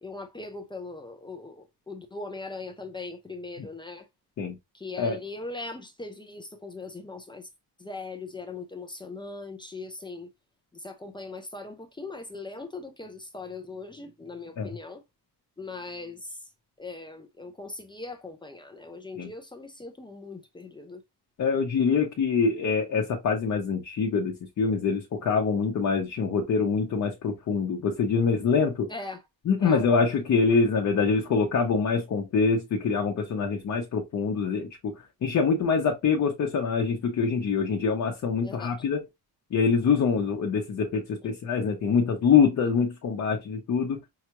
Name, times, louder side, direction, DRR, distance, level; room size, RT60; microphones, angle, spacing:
voice 1, 0.0-4.1 4.7-7.5 7.8-10.3 10.7-15.0 15.6-16.4 16.8-21.0 28.9-29.2 29.6-29.8 38.4-38.7, left 3 dB, 15° left, 0.4 m, -40 dB
voice 2, 21.4-28.9 29.5-39.0 39.5-44.0, left 5 dB, 45° left, 0.8 m, -25 dB
5.6 x 2.3 x 2.9 m
cardioid pair, 180°, 39 cm